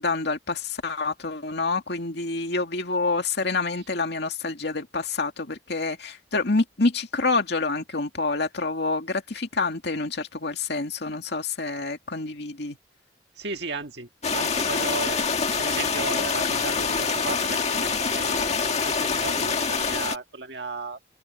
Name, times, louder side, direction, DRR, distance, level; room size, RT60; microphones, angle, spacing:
voice 1, 0.0-12.8, left 3 dB, 60° left, 2.4 m, -27 dB
voice 2, 13.4-15.2 15.6-21.0, right 3 dB, 60° right, 1.9 m, -35 dB
sound 1, 14.2-20.2, left 5 dB, 35° left, 1.8 m, -25 dB
head